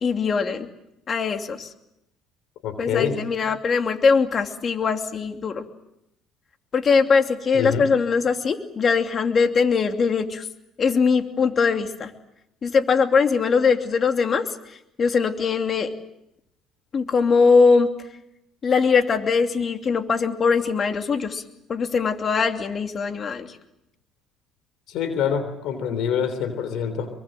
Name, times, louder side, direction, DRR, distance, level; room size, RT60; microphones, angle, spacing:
voice 1, 0.0-0.7 1.1-1.7 2.8-5.6 6.7-10.4 10.8-12.1 12.6-14.4 15.0-15.9 16.9-17.9 18.6-21.4 21.7-23.5 25.9-26.0, left 5 dB, 45° left, 6 dB, 2.8 m, -21 dB
voice 2, 2.6-3.2 7.5-7.9 24.9-27.1, left 7 dB, 70° left, 11 dB, 3.5 m, -25 dB
25.0 x 24.0 x 7.7 m, 0.82 s
supercardioid pair, 70°, 0 cm